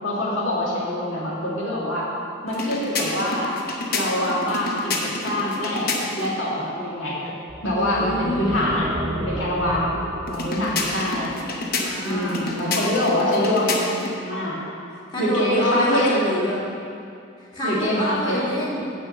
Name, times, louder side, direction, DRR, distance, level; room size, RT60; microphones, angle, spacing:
voice 1, 0.0-2.1 2.4-3.5 3.9-5.9 6.2-7.3 7.6-8.9 9.1-10.0 10.3-11.4 12.0-13.9 14.2-14.6 15.2-16.1 17.6-18.4, left 1 dB, 75° left, -5 dB, 2.3 m, -24 dB
sound 1, 2.5-6.4 10.3-14.2, left 2 dB, 50° left, 1.0 m, -29 dB
sound 2, 7.5-11.9, right 1 dB, 25° right, 0.6 m, -33 dB
voice 2, 7.7-8.7 11.8-12.6 15.1-16.6 17.4-18.9, equal, 20° left, -7 dB, 2.0 m, -27 dB
9.5 x 5.3 x 7.3 m, 2.5 s
head